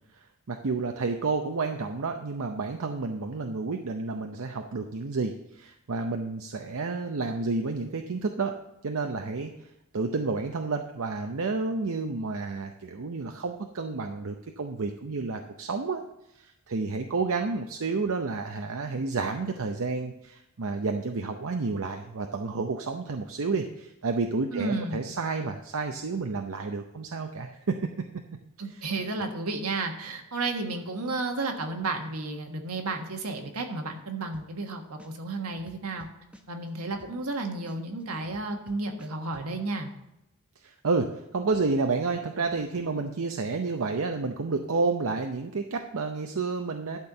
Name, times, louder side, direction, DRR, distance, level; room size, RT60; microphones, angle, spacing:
voice 1, 0.2-8.5 8.8-9.5 9.9-16.0 16.4-27.8 40.6-41.1 41.3-47.0, right 4 dB, 65° right, 5 dB, 0.7 m, -30 dB
voice 2, 24.5-25.0 28.6-36.1 36.5-39.9, right 3 dB, 80° right, 4 dB, 1.5 m, -32 dB
sound 1, 34.3-34.7 35.0-37.4 37.7-39.5, equal, 5° right, 0.8 m, -52 dB
12.0 x 4.5 x 6.7 m, 0.86 s
head